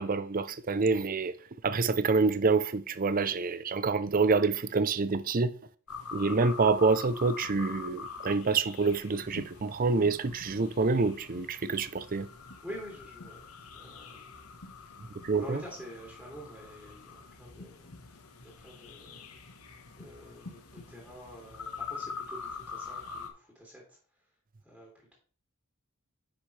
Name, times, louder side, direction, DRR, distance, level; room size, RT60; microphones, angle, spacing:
voice 1, 0.0-1.3 1.6-5.5 6.1-12.3 15.2-15.6, right 4 dB, 40° right, 0.5 m, -27 dB
sound 1, 5.9-23.3, left 5 dB, 80° left, 1.3 m, -44 dB
voice 2, 12.6-13.4 13.7-14.5 15.3-17.9 18.4-19.4 20.0-24.0 24.6-25.1, equal, ahead, 2.8 m, -47 dB
10.0 x 6.1 x 3.3 m
head